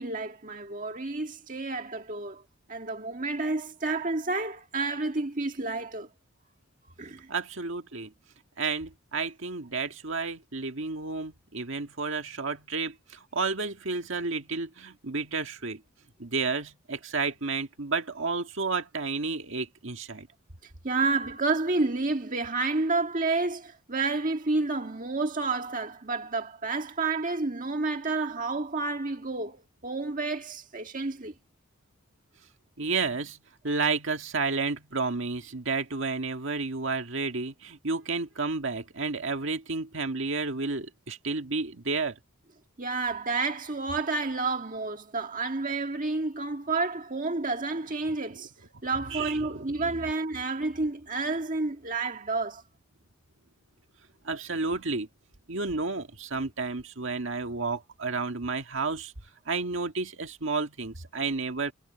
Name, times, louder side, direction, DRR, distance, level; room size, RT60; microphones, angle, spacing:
voice 1, 0.0-2.4 2.7-6.1 7.0-7.3 20.8-31.3 42.8-48.5 48.8-52.6, right 3 dB, 40° right, 1.8 m, -30 dB
voice 2, 7.3-8.1 8.6-15.8 16.2-20.3 32.8-33.4 33.6-42.2 48.1-48.2 49.1-49.4 49.7-49.8 54.2-55.1 55.5-59.1 59.5-61.7, right 4 dB, 60° right, 2.0 m, -31 dB
head